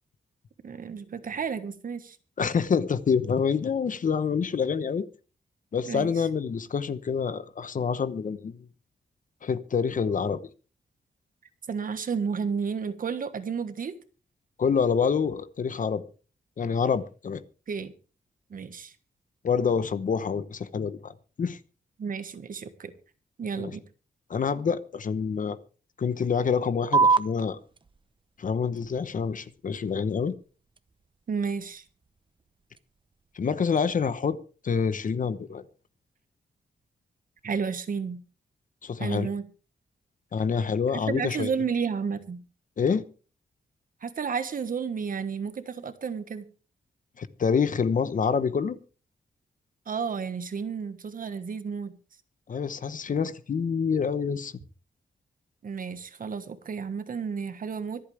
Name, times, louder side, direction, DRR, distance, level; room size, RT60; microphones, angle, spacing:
voice 1, 0.6-2.2 5.9-6.1 11.7-13.9 17.7-17.9 18.5-18.9 22.0-22.9 23.4-23.8 31.3-31.8 37.4-38.2 39.0-39.4 40.9-42.4 44.0-46.4 49.9-52.0 55.6-58.0, right 6 dB, 50° right, 1.5 m, -32 dB
voice 2, 2.4-5.0 5.7-8.6 9.4-10.4 14.6-16.0 16.6-17.4 19.4-21.6 23.6-23.7 24.3-25.6 26.0-27.6 28.4-30.3 33.3-34.4 34.6-35.6 38.8-39.3 40.3-41.5 42.8-43.0 47.2-48.8 52.5-54.5, left 6 dB, 50° left, 1.0 m, -27 dB
sound 1, 26.9-33.9, right 4 dB, 30° right, 0.8 m, -31 dB
25.0 x 8.6 x 3.4 m
wide cardioid pair, 140°, 18 cm